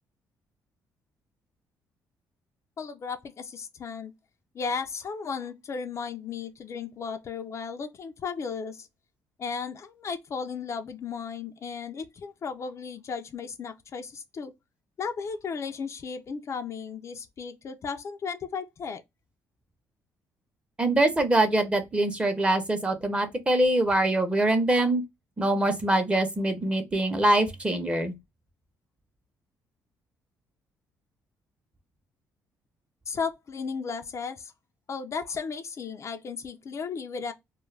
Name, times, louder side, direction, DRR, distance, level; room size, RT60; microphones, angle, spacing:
voice 1, 2.8-4.1 4.5-8.9 9.4-14.5 15.0-19.0 33.1-34.5 34.9-37.3, left 5 dB, 45° left, 0.4 m, -35 dB
voice 2, 20.8-25.0 25.4-28.1, right 1 dB, 15° right, 0.7 m, -24 dB
2.3 x 2.1 x 3.1 m
cardioid pair, 100°, 7 cm